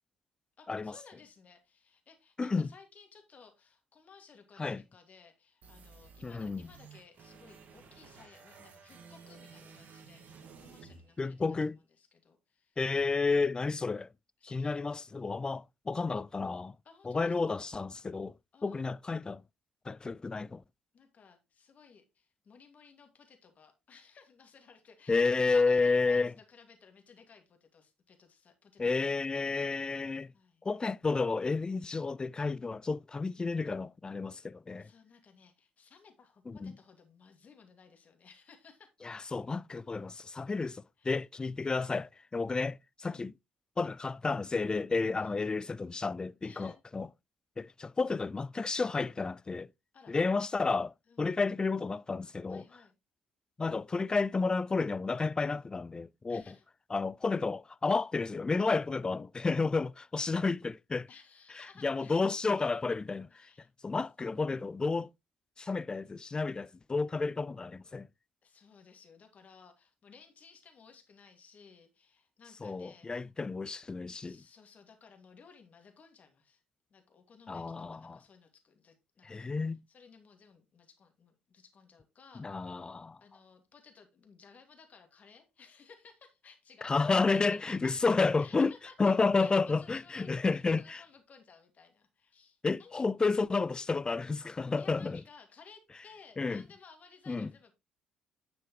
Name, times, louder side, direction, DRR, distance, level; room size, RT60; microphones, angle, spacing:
voice 1, 0.6-11.4 12.0-12.8 14.4-14.8 16.8-17.6 18.5-18.8 20.9-29.5 30.3-30.6 34.8-38.9 41.0-41.2 43.0-43.3 45.2-45.4 46.4-46.8 49.9-50.1 51.1-51.3 52.5-52.9 56.3-56.6 60.3-60.4 61.1-62.3 63.3-63.7 68.4-73.3 74.1-76.6 76.9-82.8 83.2-87.6 87.8-87.9 88.4-93.1 94.8-97.7, left 5 dB, 40° left, 2.4 m, -58 dB
voice 2, 2.4-2.7 4.6-4.8 6.2-6.7 11.2-11.8 12.8-14.1 14.4-16.8 17.0-18.3 18.6-19.4 19.9-20.6 25.1-26.3 28.8-30.3 30.6-34.9 36.5-36.7 39.0-43.3 43.8-47.1 47.6-49.7 50.1-52.6 53.6-56.4 56.9-61.1 61.6-63.3 63.8-65.1 65.6-68.1 72.6-74.4 77.5-78.2 79.2-79.8 82.4-83.2 86.8-88.7 89.0-91.0 92.6-95.2 96.4-96.6 97.3-97.5, left 4 dB, 20° left, 0.4 m, -31 dB
sound 1, 5.6-11.6, right 5 dB, 50° right, 2.0 m, -54 dB
9.6 x 7.0 x 3.2 m
figure-of-eight pair, 50°, 4 cm